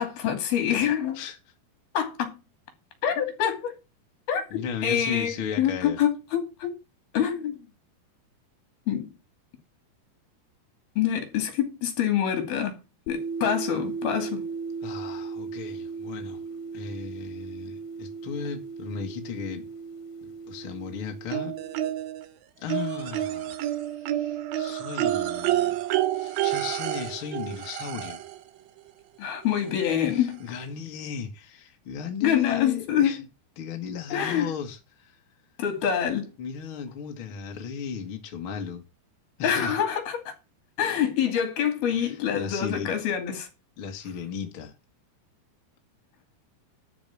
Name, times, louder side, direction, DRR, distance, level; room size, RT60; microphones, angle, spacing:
voice 1, 0.0-1.2 1.9-2.4 3.0-3.7 4.3-6.7 7.1-7.6 8.9-9.1 11.0-12.8 13.1-14.4 29.2-30.4 32.2-33.1 34.1-34.5 35.6-36.3 39.4-40.3 40.8-43.5, left 9 dB, 65° left, 4.3 m, -26 dB
voice 2, 4.5-6.0 14.8-16.4 16.7-19.7 20.2-21.6 22.6-23.6 24.1-25.8 26.1-28.2 30.1-33.3 33.6-35.2 36.4-38.8 39.4-39.8 41.9-43.0 43.8-44.7, left 7 dB, 45° left, 1.8 m, -35 dB
sound 1, 13.1-21.9, right 4 dB, 90° left, 2.9 m, -36 dB
sound 2, 21.3-22.3 22.7-28.4 29.6-29.7 30.1-30.2, right 13 dB, 75° right, 2.5 m, -29 dB
12.0 x 5.2 x 7.0 m
omnidirectional pair, 4.8 m